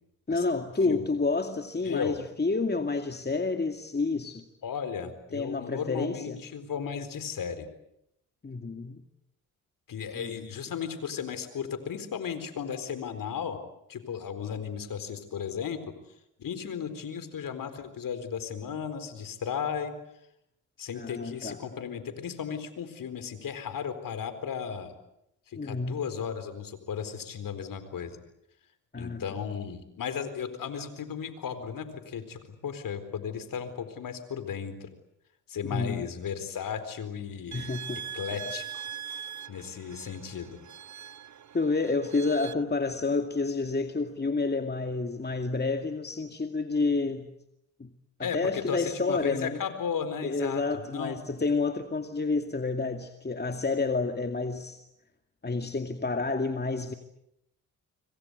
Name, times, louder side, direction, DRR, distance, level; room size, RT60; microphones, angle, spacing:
voice 1, 0.3-4.4 5.3-6.4 8.4-9.0 10.2-10.3 20.9-21.6 25.6-26.0 28.9-29.2 35.7-36.0 37.5-38.0 41.5-47.3 47.8-47.9 48.2-49.6 50.2-54.8 55.4-56.9, left 3 dB, 30° left, 6 dB, 2.3 m, -29 dB
voice 2, 1.8-2.2 4.6-7.7 9.9-13.6 13.9-15.9 16.4-19.9 20.8-24.9 25.5-28.2 28.9-34.9 35.5-37.7 38.1-38.8 39.5-40.6 48.2-51.2, left 7 dB, 65° left, 11 dB, 4.2 m, -35 dB
sound 1, 37.5-42.5, right 9 dB, 50° right, 1.1 m, -41 dB
27.0 x 25.0 x 8.2 m, 0.80 s
supercardioid pair, 55°, 35 cm